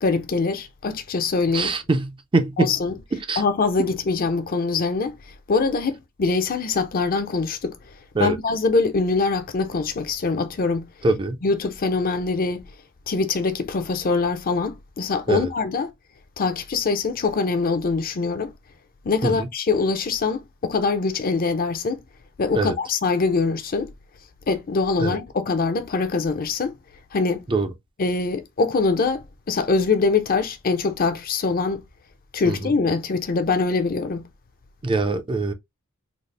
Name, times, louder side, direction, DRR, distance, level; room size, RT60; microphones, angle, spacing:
voice 1, 0.0-1.7 2.6-2.9 3.4-5.2 5.5-7.7 8.2-10.9 11.4-12.6 13.1-15.9 16.4-18.5 19.0-22.0 22.4-23.9 24.5-26.8 27.1-27.4 28.0-31.8 32.3-34.2, left 4 dB, 45° left, 0.5 m, -23 dB
voice 2, 1.5-2.7 3.1-3.4 8.2-8.4 11.0-11.4 15.3-15.5 19.2-19.5 22.5-22.7 25.0-25.2 27.5-27.7 32.4-32.7 34.8-35.5, right 3 dB, 25° right, 0.4 m, -23 dB
4.0 x 2.0 x 3.2 m
head